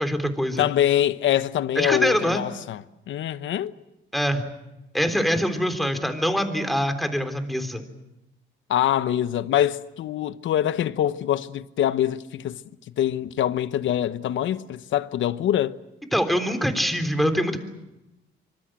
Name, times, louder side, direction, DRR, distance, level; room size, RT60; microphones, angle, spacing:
voice 1, 0.0-0.7 1.8-2.4 4.1-4.4 4.9-7.8 16.1-17.6, equal, ahead, 3.6 m, -24 dB
voice 2, 0.6-2.8 3.1-3.7 8.7-12.6 13.0-15.8, left 11 dB, 75° left, 1.0 m, -24 dB
25.0 x 25.0 x 7.7 m
cardioid pair, 90°, 20 cm